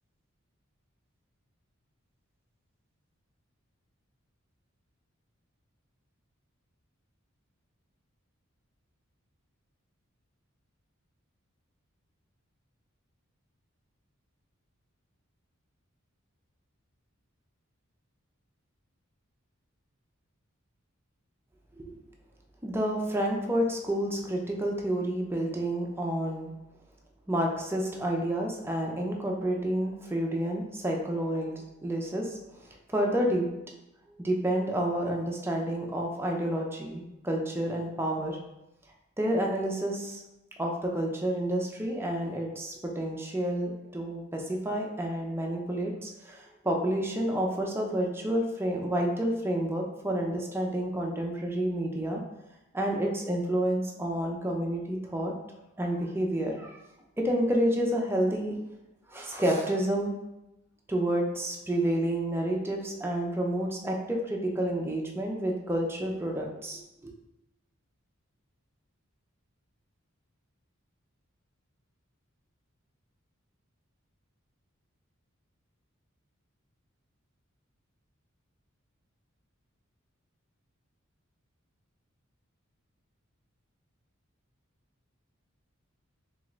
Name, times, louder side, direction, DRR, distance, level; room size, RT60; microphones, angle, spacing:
voice 1, 22.6-26.5 27.3-32.4 32.9-33.5 34.2-38.4 39.2-40.2 40.6-52.2 52.7-55.3 55.8-56.8 57.2-58.6 59.1-60.1 60.9-67.1, right 1 dB, 10° right, 0 dB, 0.5 m, -29 dB
3.7 x 3.7 x 3.1 m, 0.94 s
head